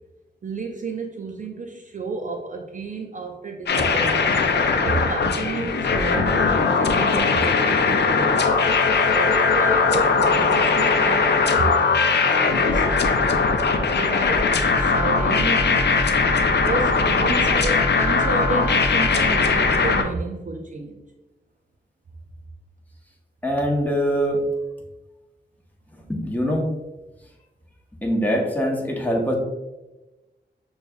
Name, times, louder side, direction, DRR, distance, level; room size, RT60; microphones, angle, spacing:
voice 1, 0.4-4.4 4.8-8.4 8.9-12.8 13.9-14.5 14.8-16.0 16.5-21.0, right 3 dB, 45° right, 3 dB, 0.4 m, -31 dB
sound 1, 3.7-20.0, left 4 dB, 70° left, 0.4 m, -20 dB
voice 2, 23.4-24.4 26.1-26.7 28.0-29.3, equal, 10° left, -1 dB, 0.8 m, -23 dB
6.6 x 2.3 x 2.2 m, 1.1 s
wide cardioid pair, 70°, 18 cm